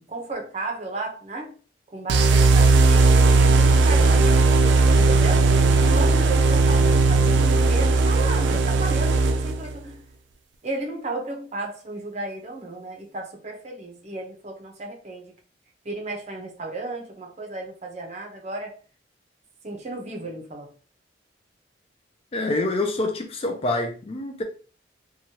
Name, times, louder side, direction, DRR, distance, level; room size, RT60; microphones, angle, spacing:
voice 1, 0.0-1.6 1.9-4.6 4.9-10.0 10.6-15.3 15.8-18.8 19.6-20.7, right 2 dB, 40° right, 0.7 m, -34 dB
sound 1, 2.1-9.7, right 3 dB, 85° right, 0.4 m, -17 dB
voice 2, 22.3-24.4, left 2 dB, 35° left, 0.4 m, -26 dB
3.0 x 2.3 x 2.8 m
head